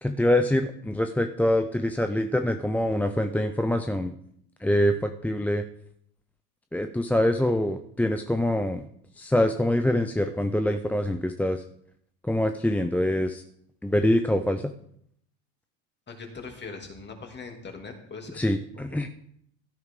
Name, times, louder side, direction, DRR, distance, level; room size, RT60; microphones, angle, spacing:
voice 1, 0.0-4.1 4.6-5.6 6.7-8.8 9.2-11.6 12.3-13.4 13.8-14.6 18.4-19.1, left 1 dB, 5° left, 7 dB, 0.5 m, -25 dB
voice 2, 16.1-18.4 18.9-19.0, left 4 dB, 25° left, 3 dB, 2.7 m, -41 dB
16.0 x 9.3 x 3.7 m, 0.69 s
supercardioid pair, 105°, 42 cm